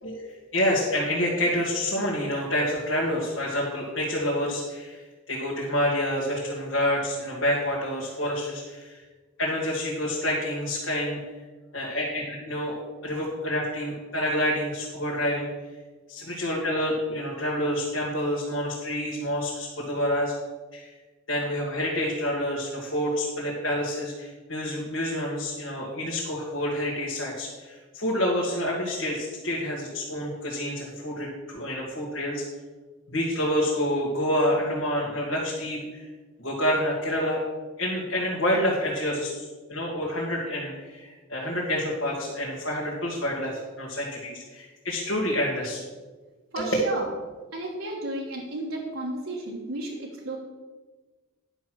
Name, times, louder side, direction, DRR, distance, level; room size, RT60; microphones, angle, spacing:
voice 1, 0.0-5.0 5.3-9.0 9.4-11.2 11.7-15.5 16.1-20.3 20.7-20.9 21.3-32.4 33.1-36.0 36.4-37.4 37.8-45.8 46.6-46.7, equal, 60° left, -5 dB, 2.0 m, -28 dB
voice 2, 46.5-47.1 47.5-50.4, right 1 dB, 75° right, -3 dB, 1.5 m, -33 dB
10.0 x 6.1 x 6.2 m, 1.3 s
head